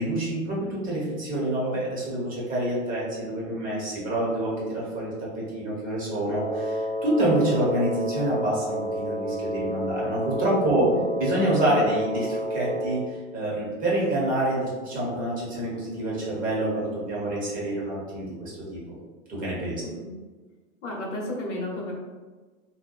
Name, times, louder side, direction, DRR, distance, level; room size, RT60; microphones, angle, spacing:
voice 1, 0.0-10.8 11.2-19.0 19.3-19.8, right 1 dB, 20° right, -6 dB, 0.7 m, -27 dB
Wind instrument woodwind instrument, 6.3-13.1, right 1 dB, 70° right, 1.2 m, -30 dB
voice 2, 10.7-11.1 19.8-20.1 20.8-21.9, left 1 dB, 65° left, -3 dB, 0.8 m, -33 dB
2.8 x 2.1 x 2.3 m, 1.3 s
figure-of-eight pair, 95°, 40 cm